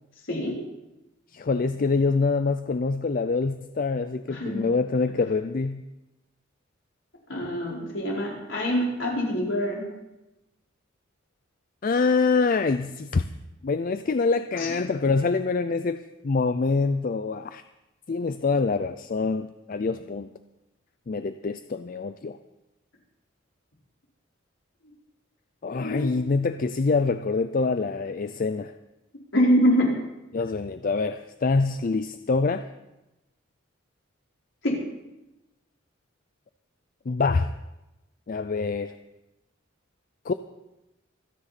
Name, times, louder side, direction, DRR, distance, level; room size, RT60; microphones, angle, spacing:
voice 1, 1.3-5.8 11.8-13.2 13.6-17.6 18.1-20.3 21.1-22.4 25.6-28.7 30.3-32.7 37.1-37.5 38.3-38.9 40.3-40.4, left 4 dB, 45° left, 11 dB, 0.4 m, -25 dB
voice 2, 4.3-4.6 7.3-9.9 14.5-14.7 25.8-26.2 29.3-29.9 34.6-34.8, equal, 70° left, -3 dB, 4.6 m, -25 dB
26.0 x 9.8 x 4.2 m, 0.97 s
head